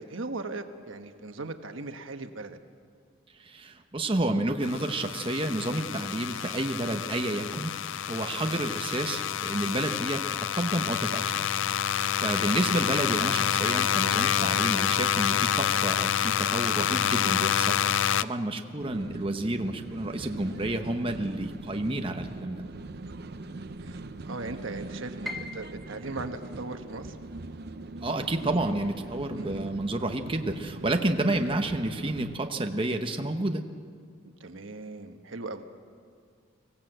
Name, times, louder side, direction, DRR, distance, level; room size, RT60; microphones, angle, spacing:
voice 1, 0.0-2.6 13.8-14.0 23.8-24.0 24.3-27.2 29.3-29.7 34.4-35.7, right 3 dB, 75° right, 7 dB, 1.2 m, -38 dB
voice 2, 3.4-11.5 11.9-22.6 28.0-33.6, right 1 dB, 25° right, 5 dB, 0.9 m, -30 dB
sound 1, 4.6-18.2, left 9 dB, 70° left, 0.4 m, -28 dB
sound 2, 18.8-32.4, right 2 dB, 50° right, 0.7 m, -41 dB
Piano, 25.2-31.2 31.5-32.7 33.1-33.2 33.9-34.2, left 2 dB, ahead, 1.0 m, -46 dB
25.0 x 16.5 x 7.9 m, 2.1 s
head